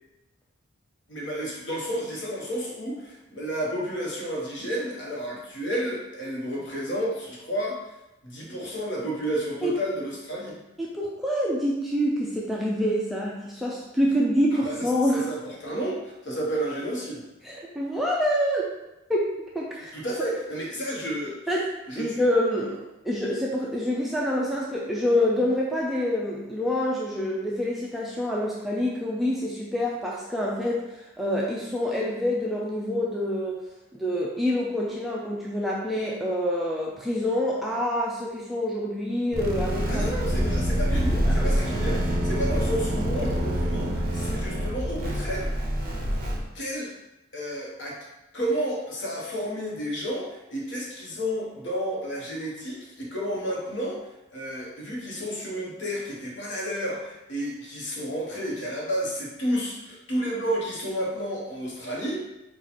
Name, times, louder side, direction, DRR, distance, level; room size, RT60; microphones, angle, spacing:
voice 1, 1.1-7.8 8.2-10.6 14.5-17.2 19.9-21.5 21.9-22.2 39.9-45.7 46.5-46.9 47.3-48.0 48.3-54.0 54.3-62.2, equal, 55° left, -3 dB, 1.1 m, -31 dB
voice 2, 10.8-15.2 17.4-18.6 19.1-19.9 21.5-21.7 22.0-30.8 31.2-33.6 33.9-40.1 40.4-40.5 41.0-41.5, left 1 dB, ahead, -4 dB, 0.4 m, -26 dB
sound 1, 39.3-46.4, equal, 45° right, 0.7 m, -26 dB
4.4 x 2.4 x 4.1 m, 0.96 s
head